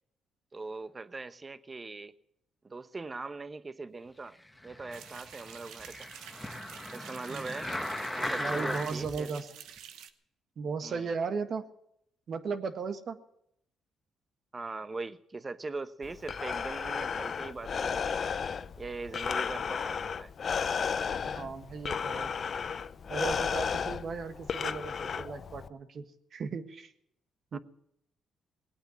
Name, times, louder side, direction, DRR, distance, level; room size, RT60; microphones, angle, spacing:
voice 1, 0.5-2.1 2.6-4.4 4.6-6.1 6.9-7.7 8.2-9.3 10.8-11.1 14.5-18.2 18.8-20.3 27.5-27.6, right 3 dB, 25° right, 13 dB, 0.9 m, -41 dB
sound 1, 4.6-9.2 9.8-9.9, left 1 dB, 5° left, 1.4 m, -38 dB
sound 2, 4.9-10.1, right 9 dB, 85° right, 1.1 m, -49 dB
voice 2, 8.4-9.5 10.6-11.6 12.3-13.2 21.2-22.3 23.1-26.0 26.3-26.9 27.5-27.6, right 5 dB, 55° right, 8 dB, 1.5 m, -36 dB
Breathing, 16.0-25.7, left 6 dB, 50° left, 0.6 m, -33 dB
19.0 x 8.9 x 7.7 m, 0.75 s
cardioid pair, 90°, 0 cm